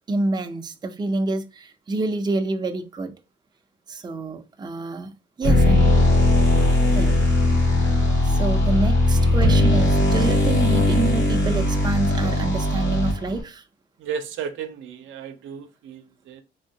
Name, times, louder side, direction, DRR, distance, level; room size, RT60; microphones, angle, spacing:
voice 1, 0.1-3.1 3.9-5.1 5.4-5.9 6.9-7.1 8.2-13.6, right 2 dB, 20° right, 0.5 m, -27 dB
sound 1, 5.4-13.4, left 2 dB, 70° left, 1.8 m, -19 dB
voice 2, 14.0-16.4, right 7 dB, 75° right, 0.6 m, -34 dB
3.6 x 3.0 x 2.7 m
cardioid pair, 90°, 20 cm